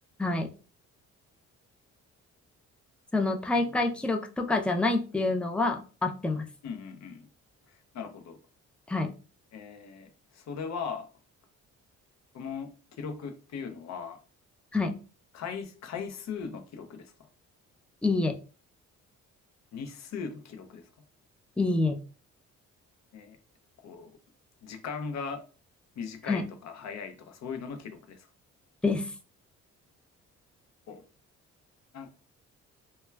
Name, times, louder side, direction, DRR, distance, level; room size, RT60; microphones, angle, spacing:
voice 1, 0.2-0.5 3.1-6.5 8.9-9.1 14.7-15.0 18.0-18.4 21.6-22.0 26.3-26.4 28.8-29.1, left 3 dB, 5° left, 0.3 m, -27 dB
voice 2, 6.6-7.3 7.7-8.4 9.5-11.1 12.3-14.2 15.3-17.1 19.7-20.8 23.1-23.4 23.8-24.1 24.6-25.4 26.0-28.3 30.9-31.0 31.9-32.1, left 6 dB, 65° left, 0.6 m, -39 dB
2.2 x 2.1 x 3.2 m
cardioid pair, 90°, 30 cm